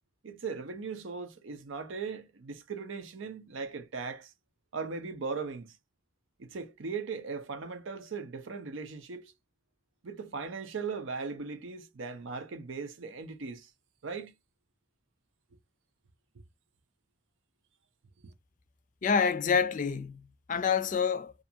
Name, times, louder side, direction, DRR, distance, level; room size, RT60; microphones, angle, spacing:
voice 1, 0.2-4.3 4.7-5.8 6.4-9.3 10.0-13.7 14.0-14.3 18.2-18.3, right 5 dB, 85° right, 0.6 m, -38 dB
voice 2, 19.0-21.3, left 6 dB, 40° left, 0.4 m, -27 dB
2.5 x 2.3 x 2.7 m
head